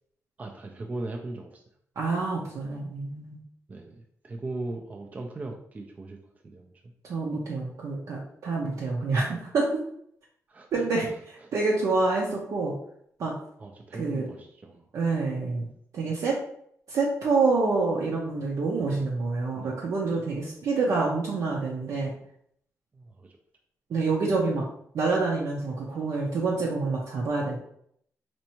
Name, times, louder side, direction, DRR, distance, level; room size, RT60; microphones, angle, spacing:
voice 1, 0.4-1.6 3.7-6.2 6.4-6.9 10.5-10.8 11.4-11.5 13.6-14.9 18.8-19.2 19.5-19.8 22.9-23.3, right 2 dB, 25° right, 2 dB, 0.4 m, -39 dB
voice 2, 2.0-3.4 7.0-9.7 10.7-12.7 13.2-13.3 14.0-14.3 14.9-15.7 15.9-16.4 16.9-22.1 23.9-24.7 24.9-27.6, right 3 dB, 70° right, -3 dB, 0.7 m, -27 dB
4.3 x 2.6 x 2.9 m, 0.69 s
wide cardioid pair, 150°, 6 cm